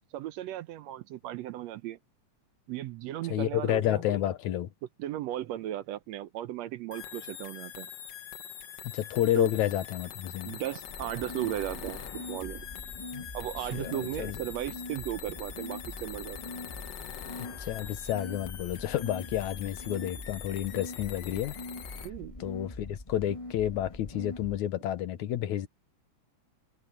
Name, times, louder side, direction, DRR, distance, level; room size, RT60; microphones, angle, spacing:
voice 1, 0.1-2.0 2.7-4.2 5.0-7.9 9.4-9.5 10.4-12.7 13.3-16.4 22.0-22.3, right 13 dB, 75° right, 1.8 m, -36 dB
voice 2, 3.3-4.7 8.8-10.6 13.1-13.2 13.7-13.9 14.2-14.4 17.4-21.6 22.4-25.7, left 12 dB, 80° left, 2.5 m, -30 dB
sound 1, 6.9-22.1, left 9 dB, 60° left, 2.4 m, -44 dB
sound 2, 10.9-24.6, left 2 dB, 40° left, 0.4 m, -43 dB
omnidirectional pair, 3.3 m